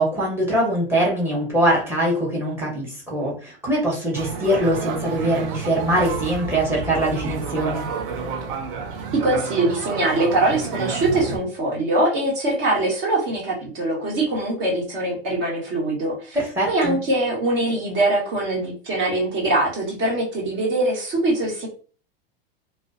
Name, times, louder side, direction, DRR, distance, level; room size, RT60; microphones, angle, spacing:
voice 1, 0.0-7.8 16.3-17.0, right 1 dB, 5° right, -3 dB, 0.9 m, -22 dB
sound 1, 4.1-11.4, right 5 dB, 65° right, 0.5 m, -30 dB
voice 2, 9.1-21.7, right 2 dB, 45° right, -3 dB, 1.1 m, -22 dB
2.4 x 2.2 x 2.4 m, 0.40 s
hypercardioid pair, 125°, 31 cm